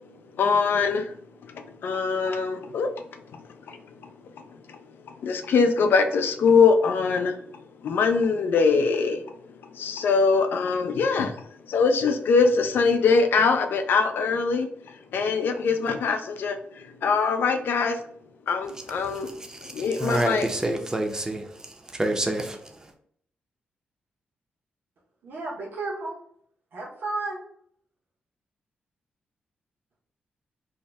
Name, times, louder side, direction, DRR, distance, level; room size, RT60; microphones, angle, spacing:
voice 1, 0.4-1.2 1.4-3.4 3.7-4.1 4.4-4.8 5.1-7.4 7.8-9.2 9.6-18.0 18.5-19.3 19.6-20.4, left 5 dB, 75° left, 0.4 m, -23 dB
voice 2, 18.8-22.9, right 1 dB, 20° right, 0.5 m, -29 dB
voice 3, 25.2-26.2 26.7-27.4, right 2 dB, 75° right, 0.9 m, -32 dB
2.7 x 2.1 x 3.4 m
cardioid pair, 70°, 4 cm